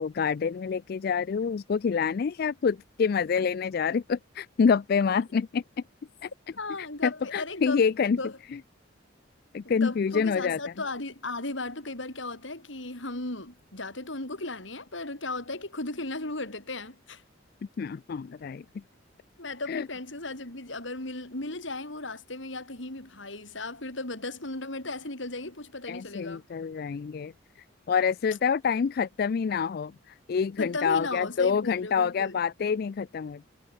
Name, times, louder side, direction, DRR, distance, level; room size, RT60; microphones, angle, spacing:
voice 1, 0.0-5.6 6.2-6.3 6.8-8.2 8.5-8.6 9.5-10.6 17.8-18.6 19.7-19.9 25.9-27.3 27.9-33.5, left 6 dB, 50° left, 0.3 m, -27 dB
voice 2, 6.6-7.8 8.2-8.3 9.6-17.2 19.4-26.4 30.6-32.4, left 2 dB, 70° left, 4.6 m, -36 dB
head